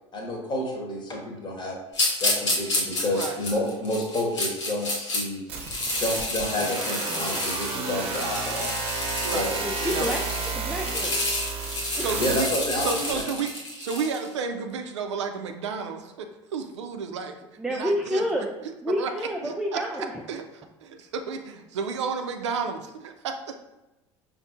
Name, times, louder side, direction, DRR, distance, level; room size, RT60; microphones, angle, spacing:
voice 1, 0.1-1.8 2.2-5.4 6.0-8.7 9.2-9.6 9.9-10.2 12.2-13.2, left 1 dB, 30° left, 0 dB, 1.1 m, -29 dB
sound 1, 1.9-5.2 5.6-14.3, left 2 dB, 75° left, 1.0 m, -30 dB
sound 2, 5.5-13.2, right 4 dB, 40° right, 0.7 m, -32 dB
voice 2, 9.6-10.2 10.4-11.2 11.9-12.2 17.6-18.5 18.8-20.1, equal, 5° right, 0 dB, 0.4 m, -29 dB
voice 3, 12.0-12.5 12.8-13.5 13.8-17.4 17.7-18.5 19.0-19.1 19.4-19.8 20.3-20.4 20.8-23.6, right 5 dB, 75° right, 6 dB, 0.4 m, -32 dB
5.3 x 2.6 x 2.5 m, 0.98 s
figure-of-eight pair, 65°, 15 cm